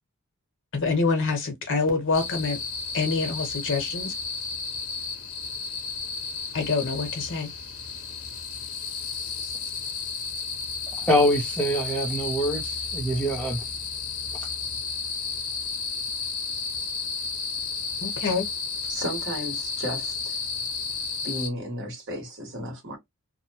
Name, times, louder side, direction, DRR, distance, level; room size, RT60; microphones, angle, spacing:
voice 1, 0.7-2.6 2.9-4.1 6.5-7.5 18.0-18.5, left 4 dB, 60° left, 1.0 m, -26 dB
sound 1, 2.1-21.5, left 5 dB, 80° left, 0.8 m, -32 dB
voice 2, 11.0-13.6, equal, 5° left, 0.5 m, -24 dB
voice 3, 18.9-20.4 21.2-23.0, equal, 55° right, 1.4 m, -34 dB
2.7 x 2.1 x 2.8 m
head